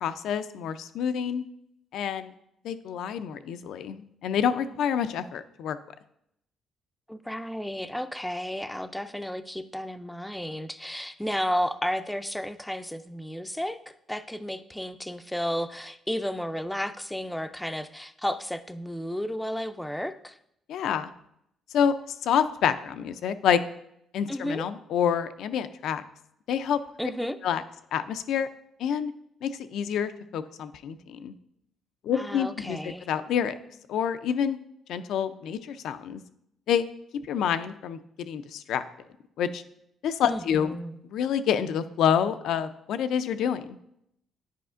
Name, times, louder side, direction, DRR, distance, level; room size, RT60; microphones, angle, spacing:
voice 1, 0.0-1.4 1.9-2.3 2.6-5.8 20.7-21.1 21.7-23.6 24.1-26.0 26.5-26.8 27.4-27.6 27.9-28.5 28.8-29.1 29.4-31.3 32.0-32.8 33.1-33.5 33.9-34.6 34.9-36.2 36.7-36.8 37.3-38.8 39.4-39.6 40.0-40.7 41.1-43.7, left 8 dB, 75° left, 11 dB, 0.4 m, -27 dB
voice 2, 7.1-20.4 24.3-24.6 27.0-27.4 32.1-33.1 40.3-41.0, equal, 5° left, 11 dB, 0.4 m, -32 dB
9.2 x 4.9 x 2.5 m, 0.77 s
cardioid pair, 105°, 0 cm